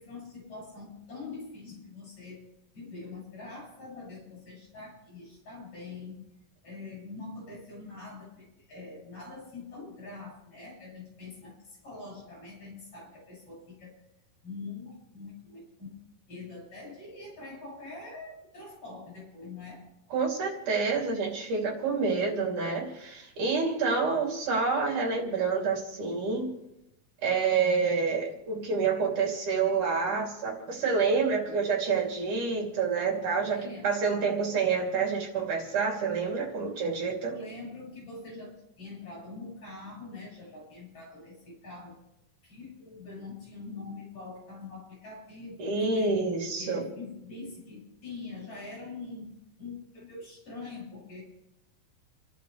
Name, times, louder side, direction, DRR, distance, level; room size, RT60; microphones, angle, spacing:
voice 1, 0.0-2.4 2.7-6.3 6.6-14.0 14.4-15.9 16.3-19.8 33.5-33.9 37.2-42.0 42.4-45.6 45.9-46.2 46.6-49.3 49.6-51.2, left 3 dB, 45° left, 7.5 m, -44 dB
voice 2, 20.1-26.5 27.2-37.3 45.6-46.8, right 5 dB, 70° right, 4.5 m, -28 dB
29.5 x 11.5 x 3.3 m
omnidirectional pair, 3.7 m